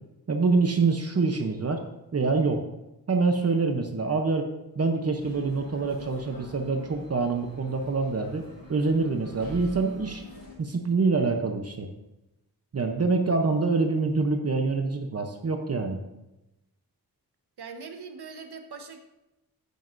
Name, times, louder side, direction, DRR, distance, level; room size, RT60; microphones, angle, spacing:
voice 1, 0.3-1.8 2.1-2.6 3.1-4.5 4.8-8.4 8.7-10.2 10.6-11.9 12.7-16.0, right 4 dB, 40° right, 4 dB, 0.8 m, -25 dB
sound 1, 5.2-10.5, left 2 dB, 65° left, 2.6 m, -46 dB
voice 2, 17.6-19.0, right 5 dB, 90° right, 5 dB, 1.2 m, -41 dB
13.5 x 9.5 x 2.6 m, 0.95 s
wide cardioid pair, 170°, 38 cm